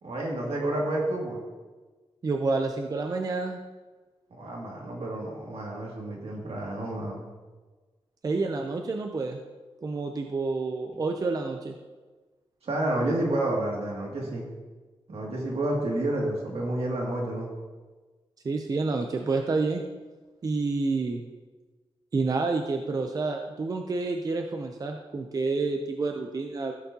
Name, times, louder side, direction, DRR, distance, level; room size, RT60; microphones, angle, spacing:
voice 1, 0.0-1.4 4.3-7.2 12.6-14.5 15.1-17.5, right 1 dB, 75° right, -3 dB, 2.3 m, -30 dB
voice 2, 2.2-3.6 8.2-9.4 9.8-11.7 18.4-19.8 20.4-21.2 22.1-26.7, right 3 dB, 35° right, 4 dB, 0.5 m, -29 dB
15.0 x 6.9 x 2.8 m, 1.3 s
wide cardioid pair, 175°, 10 cm